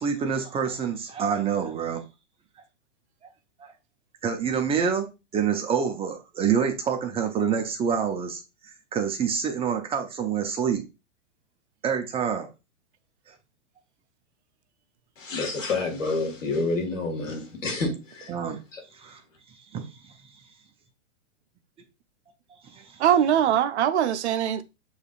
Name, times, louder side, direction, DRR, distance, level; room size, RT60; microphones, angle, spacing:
voice 1, 0.0-2.0 3.6-3.7 4.2-8.4 8.9-10.8 11.8-12.5 18.3-18.6 18.9-19.2 19.7-20.1 22.6-22.8, right 7 dB, 15° right, 0.6 m, -27 dB
voice 2, 15.2-18.3 18.7-18.8, left 3 dB, 90° left, 1.7 m, -28 dB
voice 3, 23.0-24.6, right 10 dB, 60° right, 0.6 m, -22 dB
6.5 x 3.1 x 2.4 m
hypercardioid pair, 120°, 38 cm